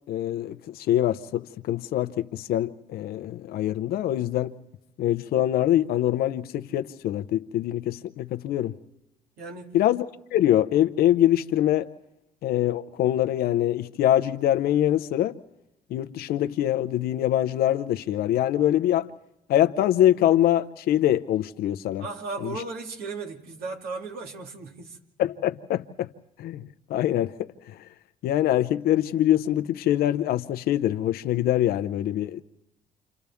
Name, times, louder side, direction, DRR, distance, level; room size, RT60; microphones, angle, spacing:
voice 1, 0.1-4.5 5.0-8.8 9.7-10.1 10.3-11.9 12.4-15.3 15.9-19.1 19.5-22.0 22.4-22.6 25.2-26.1 26.4-27.8 28.2-32.4, left 12 dB, 75° left, 0.8 m, -24 dB
voice 2, 9.4-9.8 22.0-25.0, right 3 dB, 75° right, 2.4 m, -36 dB
29.0 x 27.0 x 3.5 m
supercardioid pair, 75°, 16 cm